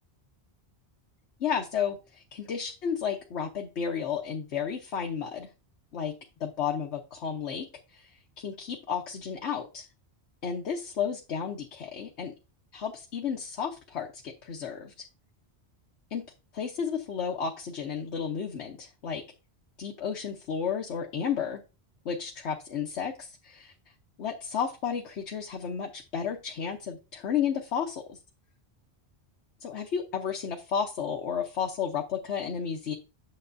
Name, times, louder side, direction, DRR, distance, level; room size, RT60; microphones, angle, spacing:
voice 1, 1.4-5.5 5.9-6.1 6.4-8.1 8.4-9.8 10.4-12.3 12.7-15.0 16.1-16.2 16.5-19.2 19.8-21.6 22.0-23.7 24.2-28.2 29.6-32.9, left 7 dB, 90° left, 1 dB, 1.2 m, -32 dB
8.7 x 6.7 x 2.6 m, 0.28 s
omnidirectional pair, 1.1 m